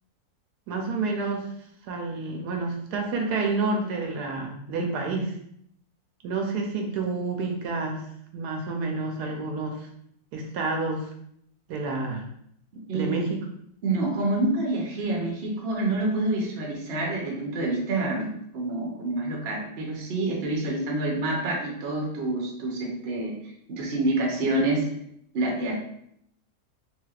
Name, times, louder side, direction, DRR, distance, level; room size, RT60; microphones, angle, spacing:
voice 1, 0.7-1.5 1.9-5.3 6.2-8.0 8.3-9.9 10.3-11.1 11.7-12.3 12.9-13.4, right 3 dB, 80° right, 2 dB, 1.1 m, -29 dB
voice 2, 12.9-13.3 13.8-23.3 23.7-24.8 25.3-25.7, right 2 dB, 55° right, -1 dB, 0.8 m, -27 dB
3.3 x 2.7 x 2.3 m, 0.71 s
omnidirectional pair, 1.7 m